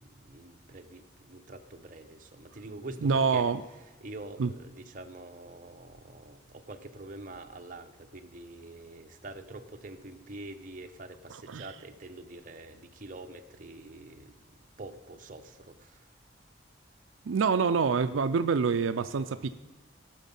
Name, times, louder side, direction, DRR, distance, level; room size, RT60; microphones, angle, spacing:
voice 1, 0.0-3.5 4.0-16.1, right 2 dB, 40° right, 5 dB, 0.8 m, -46 dB
voice 2, 3.0-3.6 4.4-4.5 11.5-11.6 17.2-19.5, right 5 dB, 80° right, 9 dB, 0.4 m, -26 dB
17.5 x 6.6 x 5.4 m, 1.1 s
head